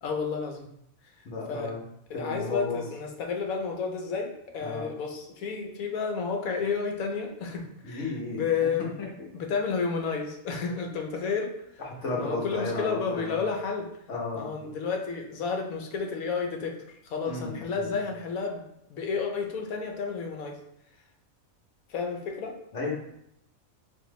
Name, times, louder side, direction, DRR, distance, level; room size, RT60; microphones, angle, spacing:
voice 1, 0.0-0.7 1.0-1.7 2.1-8.9 9.3-11.8 12.2-13.9 14.3-20.6 21.9-22.6, left 5 dB, 80° left, 2 dB, 1.1 m, -31 dB
voice 2, 1.2-1.8 2.1-2.8 4.6-4.8 7.8-8.4 9.0-9.1 12.0-13.4 14.1-14.5 17.3-17.9 22.7-22.9, left 3 dB, 60° left, -1 dB, 1.2 m, -33 dB
4.2 x 2.6 x 3.1 m, 0.76 s
omnidirectional pair, 1.5 m